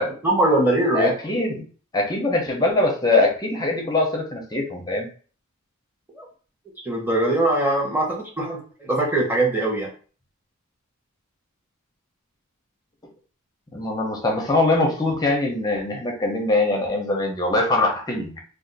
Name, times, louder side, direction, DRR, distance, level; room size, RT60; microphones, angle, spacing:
voice 1, 0.2-1.1 6.2-6.3 6.8-9.9, right 1 dB, 10° right, -3 dB, 0.9 m, -21 dB
voice 2, 0.9-1.6 1.9-5.1 13.7-18.3, left 2 dB, 15° left, 0 dB, 0.6 m, -22 dB
2.5 x 2.4 x 3.9 m, 0.40 s
head